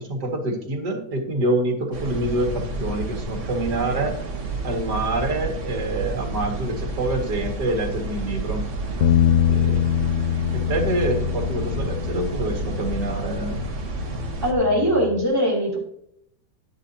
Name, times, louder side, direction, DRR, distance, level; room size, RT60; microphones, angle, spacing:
voice 1, 0.0-4.1 4.6-8.7 9.5-9.8 10.5-13.6, right 1 dB, 70° right, 3 dB, 2.6 m, -26 dB
sound 1, 1.9-14.5, right 3 dB, 45° right, 1.6 m, -30 dB
Bass guitar, 9.0-15.3, left 10 dB, 85° left, 0.6 m, -24 dB
voice 2, 14.4-15.8, equal, 10° right, -3 dB, 3.2 m, -21 dB
11.5 x 10.5 x 2.8 m, 0.72 s
omnidirectional pair, 1.8 m